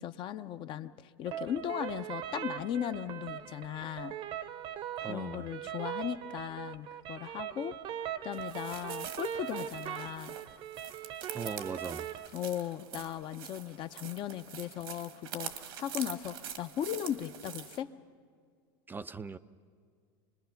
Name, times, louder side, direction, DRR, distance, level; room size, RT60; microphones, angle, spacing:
voice 1, 0.0-4.1 5.1-7.8 8.2-10.4 12.3-17.9, left 10 dB, 45° left, 10 dB, 0.7 m, -37 dB
sound 1, 1.3-12.3, right 10 dB, 45° right, 0.8 m, -40 dB
voice 2, 5.0-5.5 11.3-12.1 18.9-19.4, right 4 dB, 15° right, 11 dB, 0.4 m, -39 dB
sound 2, 8.3-17.8, right 9 dB, 85° right, 1.5 m, -45 dB
25.5 x 20.0 x 5.8 m, 2.1 s
supercardioid pair, 110°, 12 cm